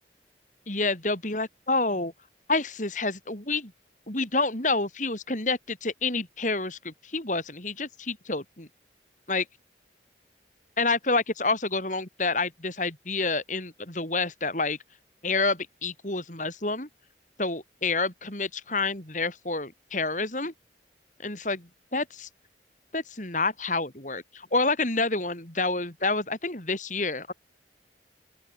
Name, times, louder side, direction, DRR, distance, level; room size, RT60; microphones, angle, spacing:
voice 1, 0.7-2.1 2.5-3.7 4.1-8.7 9.3-9.4 10.8-14.8 15.2-16.9 17.4-20.5 21.2-22.3 22.9-27.3, left 3 dB, 45° left, 4.7 m, -28 dB
open air
head